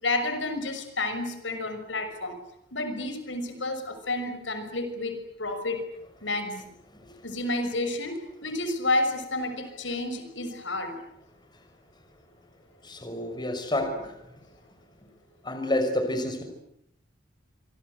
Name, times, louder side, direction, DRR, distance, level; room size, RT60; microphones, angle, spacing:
voice 1, 0.0-2.4 2.7-5.8 6.2-6.6 7.2-11.0, left 2 dB, 80° left, 8 dB, 6.1 m, -30 dB
voice 2, 12.8-14.2 15.4-16.4, left 1 dB, 25° left, 5 dB, 5.7 m, -29 dB
27.5 x 24.5 x 8.1 m, 0.77 s
head